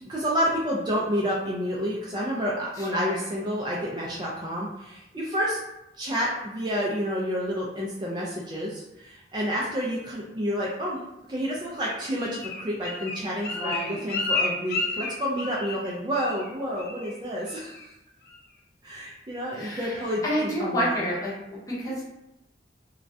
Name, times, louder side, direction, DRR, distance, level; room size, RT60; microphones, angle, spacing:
voice 1, 0.1-5.6 6.0-11.0 11.3-17.9 18.8-21.0 21.7-21.9, equal, 25° right, -4 dB, 0.3 m, -29 dB
voice 2, 2.8-3.2 13.5-14.0 19.5-22.1, equal, 20° left, -7 dB, 0.7 m, -30 dB
Bird, 11.8-15.9 16.1-16.5 16.8-17.1 17.5-17.9 18.3-18.4, left 3 dB, 60° left, 0.4 m, -31 dB
2.3 x 2.1 x 2.5 m, 0.89 s
head